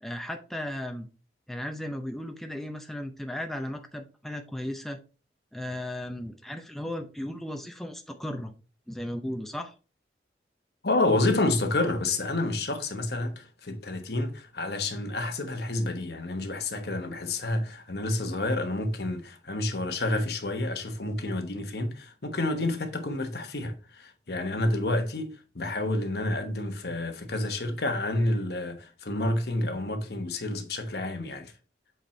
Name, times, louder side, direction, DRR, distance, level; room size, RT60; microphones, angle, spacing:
voice 1, 0.0-1.1 1.5-5.0 5.5-8.5 8.9-9.7, left 1 dB, ahead, 0.6 m, -35 dB
voice 2, 10.8-31.5, left 2 dB, 65° left, 1.1 m, -29 dB
8.0 x 4.4 x 3.2 m
head